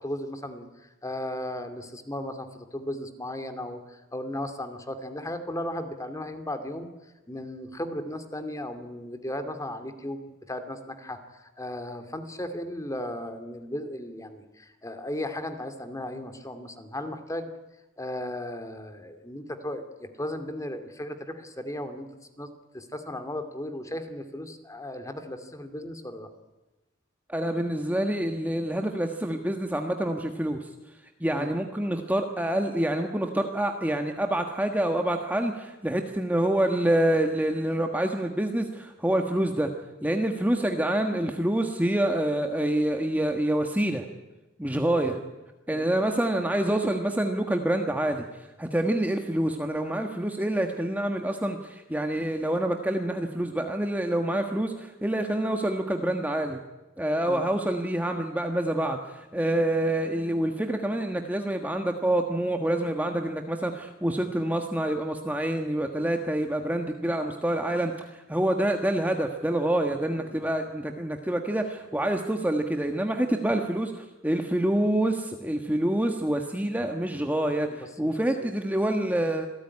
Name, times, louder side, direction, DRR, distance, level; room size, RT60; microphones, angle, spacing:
voice 1, 0.0-6.9 7.3-10.2 10.5-17.5 18.0-22.1 22.4-22.5 22.7-26.3 31.3-31.5 45.0-45.2 45.7-45.9 57.2-57.4 70.2-70.5 77.6-78.1 78.4-78.5, left 1 dB, 15° left, 8 dB, 2.5 m, -36 dB
voice 2, 27.3-30.7 31.2-39.7 40.0-44.0 44.6-45.2 45.7-56.6 57.0-79.5, right 1 dB, 10° right, 4 dB, 1.4 m, -27 dB
27.0 x 18.0 x 9.8 m, 1.1 s
head